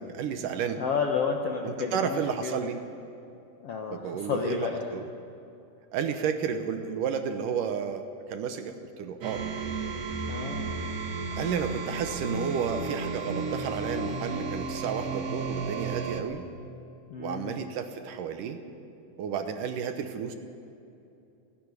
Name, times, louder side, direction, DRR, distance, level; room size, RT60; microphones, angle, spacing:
voice 1, 0.0-0.8 1.6-2.8 3.9-5.1 5.9-9.4 11.4-16.4 17.2-18.6 19.2-20.4, right 7 dB, 70° right, 7 dB, 2.4 m, -32 dB
voice 2, 0.8-2.6 3.6-4.8 10.3-10.8 17.1-17.6, left 5 dB, 65° left, 2 dB, 1.5 m, -31 dB
sound 1, 9.2-16.2, right 3 dB, 55° right, 2.0 m, -33 dB
17.0 x 16.0 x 9.7 m, 2.7 s
omnidirectional pair, 4.2 m